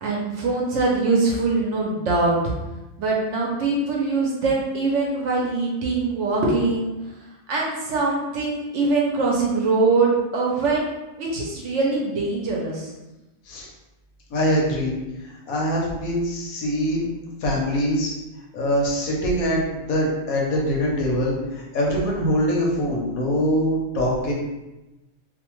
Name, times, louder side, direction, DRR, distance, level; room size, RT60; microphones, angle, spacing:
voice 1, 0.0-2.5 3.0-6.9 7.5-10.9 11.2-12.9, right 3 dB, 70° right, -3 dB, 0.8 m, -22 dB
voice 2, 14.3-14.9 15.5-17.1 17.4-18.1 18.5-24.3, equal, 90° left, -2 dB, 1.1 m, -23 dB
2.7 x 2.1 x 2.9 m, 1.0 s
omnidirectional pair, 1.4 m